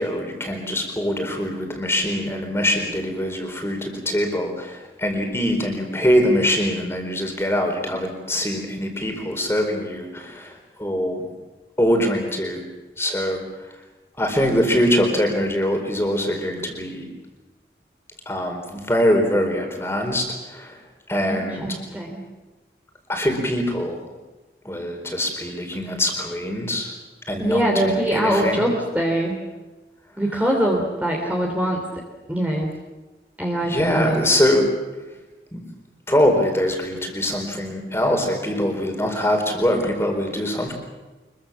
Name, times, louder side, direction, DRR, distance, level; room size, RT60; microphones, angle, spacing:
voice 1, 0.0-11.3 11.8-12.6 13.0-13.4 14.2-17.1 18.3-20.7 21.1-21.6 23.1-24.0 24.6-26.9 27.3-28.6 33.6-34.7 35.5-35.6 36.1-40.7, equal, 15° left, 3 dB, 4.4 m, -23 dB
voice 2, 21.3-22.2 27.4-29.3 30.2-31.8 32.3-32.7 33.4-34.3, right 1 dB, 10° right, -1 dB, 3.1 m, -23 dB
25.5 x 23.0 x 7.2 m, 1.2 s
head